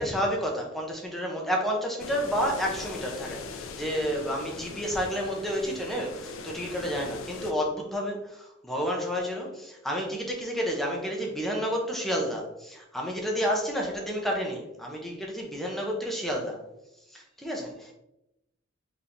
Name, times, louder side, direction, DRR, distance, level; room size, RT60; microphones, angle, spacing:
voice 1, 0.0-16.6 17.1-17.9, equal, ahead, -1 dB, 0.6 m, -30 dB
sound 1, 2.0-7.5, left 4 dB, 85° left, 0.4 m, -40 dB
3.6 x 2.9 x 2.6 m, 0.88 s
head